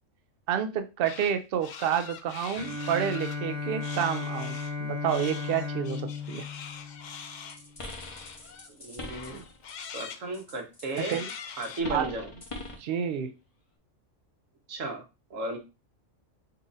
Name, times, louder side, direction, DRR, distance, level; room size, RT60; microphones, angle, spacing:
voice 1, 0.5-6.5 11.1-11.3 11.9-12.1 12.8-13.3, right 9 dB, 55° right, 8 dB, 0.7 m, -29 dB
sound 1, 1.0-1.3 1.6-3.4 3.8-4.7 5.1-8.7 9.0-10.2 10.9-11.8, left 7 dB, 75° left, 0.4 m, -43 dB
Bowed string instrument, 2.6-7.8, left 4 dB, 30° right, 1.0 m, -35 dB
sound 2, 7.5-10.0 10.3-12.9, left 2 dB, 30° left, 0.8 m, -42 dB
voice 2, 8.8-9.4 9.9-11.2 11.6-12.3 14.7-15.0 15.3-15.6, right 2 dB, 80° right, 3 dB, 1.4 m, -34 dB
4.1 x 2.5 x 3.9 m, 0.27 s
omnidirectional pair, 1.3 m